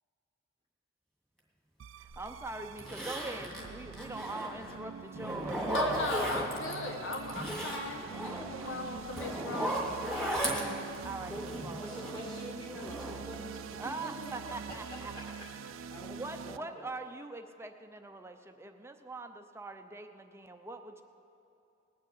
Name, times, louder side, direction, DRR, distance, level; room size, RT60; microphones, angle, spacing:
sound 1, 1.8-16.6, right 7 dB, 80° right, 0.4 m, -45 dB
voice 1, 2.0-6.3 10.3-10.6 11.0-12.0 13.8-15.3 16.0-21.0, right 2 dB, 15° right, 6 dB, 0.5 m, -43 dB
Zipper (clothing), 2.1-2.2 2.8-4.8 5.1-6.7 7.1-12.3 12.7-13.9 14.2-14.7 15.0-15.2, right 1 dB, ahead, 2.0 m, -36 dB
voice 2, 5.7-9.8, left 3 dB, 70° left, 2 dB, 1.2 m, -37 dB
voice 3, 11.8-14.1 14.7-15.3 15.7-16.8, equal, 20° left, -8 dB, 2.2 m, -45 dB
19.0 x 6.5 x 8.4 m, 2.8 s
head